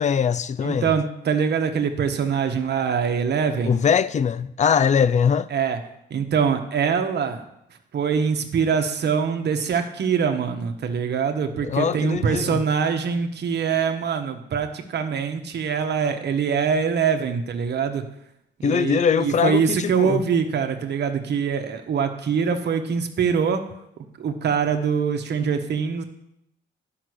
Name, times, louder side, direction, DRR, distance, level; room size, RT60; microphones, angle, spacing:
voice 1, 0.0-0.9 3.6-5.5 11.6-12.6 18.6-20.2, left 7 dB, 35° left, 0.5 m, -21 dB
voice 2, 0.6-3.8 5.5-5.8 6.1-7.4 7.9-18.0 18.6-23.6 24.2-26.0, right 6 dB, 60° right, 1.3 m, -23 dB
10.5 x 5.9 x 6.4 m
cardioid pair, 90°, 20 cm